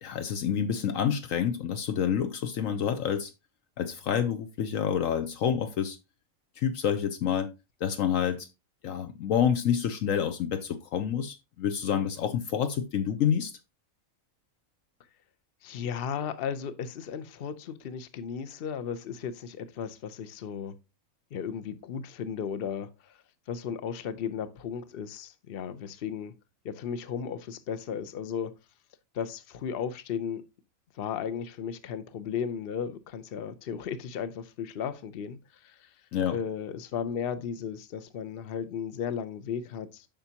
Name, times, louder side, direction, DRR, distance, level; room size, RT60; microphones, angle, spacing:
voice 1, 0.0-3.3 3.8-6.0 6.6-7.5 7.8-8.5 8.8-13.5 36.1-36.4, left 8 dB, 75° left, 1.1 m, -28 dB
voice 2, 15.6-20.7 21.3-23.2 23.5-26.3 26.6-28.5 29.1-30.5 30.9-35.9 36.3-40.1, left 7 dB, 50° left, 0.8 m, -35 dB
8.8 x 5.9 x 2.8 m
omnidirectional pair, 1.4 m